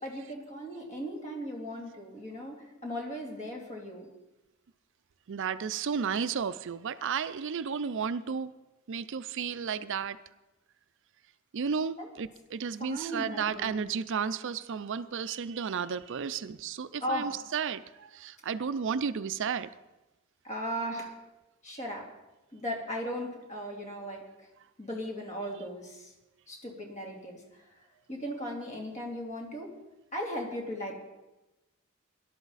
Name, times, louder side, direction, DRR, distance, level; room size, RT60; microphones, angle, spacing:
voice 1, 0.0-4.0 12.0-12.1 12.8-13.9 17.0-17.4 20.4-21.1 21.6-22.1 22.5-24.5 24.8-26.1 26.5-27.5 28.1-29.7 30.1-30.9, equal, 35° left, 2.8 m, -37 dB
voice 2, 5.3-8.5 8.9-10.2 11.5-19.7, right 6 dB, 60° right, 0.5 m, -33 dB
18.0 x 12.0 x 4.1 m
head